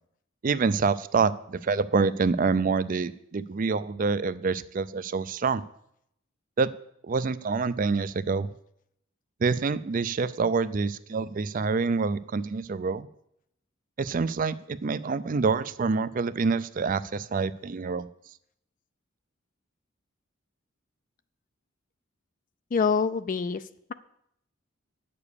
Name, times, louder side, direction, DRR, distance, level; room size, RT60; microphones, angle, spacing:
voice 1, 0.4-5.6 6.6-6.7 7.0-8.5 9.4-13.1 14.0-18.1, right 4 dB, 40° right, 15 dB, 0.4 m, -26 dB
voice 2, 22.7-23.9, left 5 dB, 40° left, 12 dB, 0.4 m, -26 dB
9.6 x 6.8 x 6.8 m, 0.74 s
head